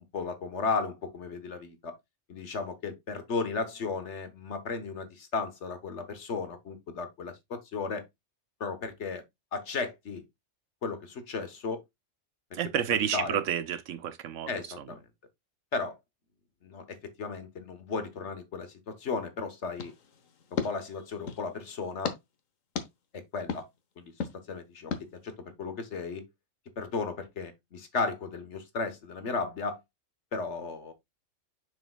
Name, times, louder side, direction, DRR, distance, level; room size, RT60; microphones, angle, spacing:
voice 1, 0.1-1.9 2.3-8.0 8.6-9.2 9.5-10.2 10.8-11.8 13.1-13.4 14.5-15.0 15.7-15.9 16.6-19.9 20.6-22.1 23.3-23.7 24.0-24.9 25.2-25.3 25.6-26.3 26.8-29.8 30.3-30.9, left 4 dB, 60° left, 1.5 m, -34 dB
voice 2, 12.5-14.5 14.8-14.9, right 9 dB, 75° right, 1.0 m, -30 dB
sound 1, 19.8-21.5 22.0-22.2 22.8-22.9 23.5-23.6 24.2-24.3 24.9-25.0, left 6 dB, 90° left, 1.4 m, -35 dB
6.8 x 6.3 x 2.3 m
omnidirectional pair, 1.3 m